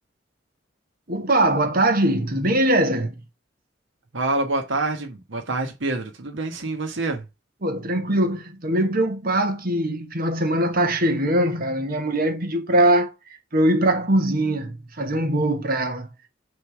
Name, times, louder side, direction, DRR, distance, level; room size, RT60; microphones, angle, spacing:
voice 1, 1.1-3.1 7.6-13.1 13.5-16.1, right 1 dB, 50° right, 1.4 m, -21 dB
voice 2, 4.1-7.2, right 2 dB, 90° right, 1.4 m, -26 dB
6.5 x 3.5 x 4.6 m
head